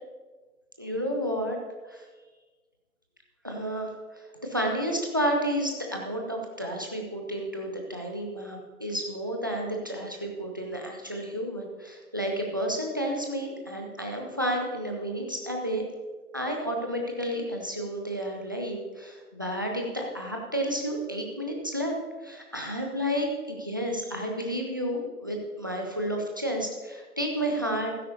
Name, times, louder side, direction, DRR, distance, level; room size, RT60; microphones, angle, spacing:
voice 1, 0.8-1.6 1.9-2.1 3.4-15.8 16.3-21.9 22.2-27.9, equal, 15° right, 1 dB, 0.6 m, -31 dB
14.5 x 12.5 x 2.8 m, 1.3 s
figure-of-eight pair, 140°, 45 cm